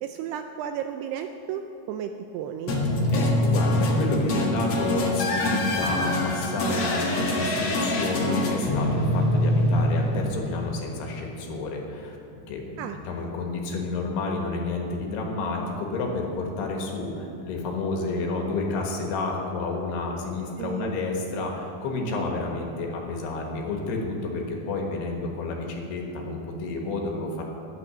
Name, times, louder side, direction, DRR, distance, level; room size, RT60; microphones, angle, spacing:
voice 1, 0.0-2.8 12.8-13.0 20.6-21.0, right 9 dB, 80° right, 6 dB, 2.4 m, -33 dB
sound 1, 2.7-10.9, left 1 dB, 55° left, 1.7 m, -24 dB
voice 2, 3.1-12.2 12.5-27.4, left 3 dB, 70° left, 1 dB, 3.3 m, -30 dB
12.0 x 9.4 x 6.9 m, 2.9 s
omnidirectional pair, 5.1 m